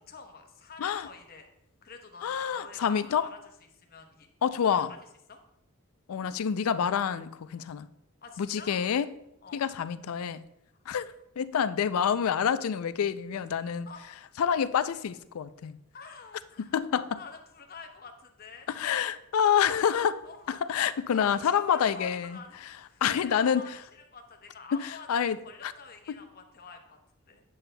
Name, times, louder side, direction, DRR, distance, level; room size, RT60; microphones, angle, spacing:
voice 1, 0.0-1.5 1.8-3.4 3.7-4.3 4.7-4.8 5.3-5.4 7.6-7.7 8.2-8.8 9.4-9.8 13.9-14.0 15.9-18.7 20.2-22.6 22.9-25.2 25.4-27.0 27.3-27.4, left 4 dB, 45° left, 0.9 m, -48 dB
voice 2, 2.2-3.2 4.4-4.9 6.1-7.9 8.4-9.1 9.5-10.4 10.9-13.9 14.4-15.8 16.7-17.2 18.7-22.4 23.0-23.6 24.7-25.4 25.6-25.7 26.1-26.2, left 8 dB, 80° left, 0.4 m, -27 dB
8.7 x 7.5 x 2.2 m
head